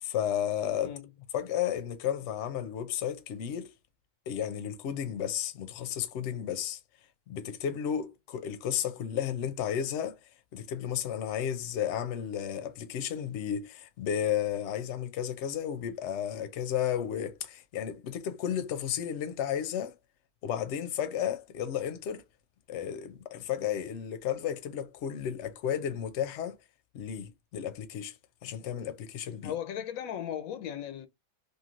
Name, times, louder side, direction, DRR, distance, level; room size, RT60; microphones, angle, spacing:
voice 1, 0.0-0.9 1.3-3.7 4.3-6.8 7.3-10.2 10.5-19.9 20.4-22.2 22.7-26.6 26.9-28.1 28.4-29.5, left 9 dB, 65° left, 0.9 m, -33 dB
voice 2, 29.4-31.1, left 10 dB, 90° left, 1.0 m, -36 dB
3.1 x 2.5 x 2.4 m
omnidirectional pair, 1.4 m